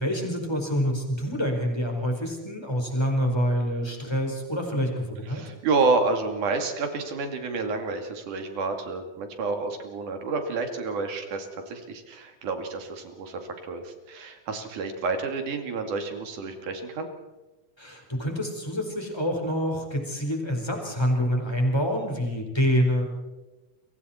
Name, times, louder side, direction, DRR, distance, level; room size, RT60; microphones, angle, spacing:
voice 1, 0.0-5.4 17.8-23.0, equal, 10° left, 2 dB, 4.4 m, -26 dB
voice 2, 5.3-17.1, right 3 dB, 80° right, 5 dB, 3.9 m, -29 dB
29.0 x 24.0 x 4.4 m, 1.1 s
omnidirectional pair, 3.5 m